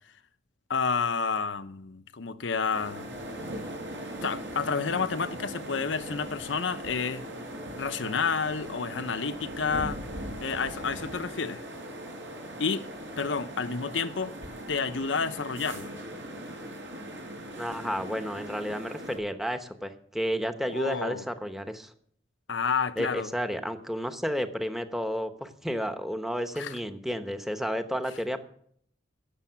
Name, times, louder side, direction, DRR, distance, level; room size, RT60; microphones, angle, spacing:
voice 1, 0.7-3.1 4.2-7.2 7.8-10.0 10.4-11.6 12.6-12.9 13.2-14.4 14.7-15.9 20.7-21.2 22.5-23.3 26.5-26.8, left 5 dB, 80° left, 0.8 m, -30 dB
sound 1, 2.7-19.2, right 1 dB, 75° right, 4.9 m, -40 dB
voice 2, 17.6-21.9 23.0-28.4, equal, ahead, 1.0 m, -32 dB
17.0 x 7.1 x 5.8 m
head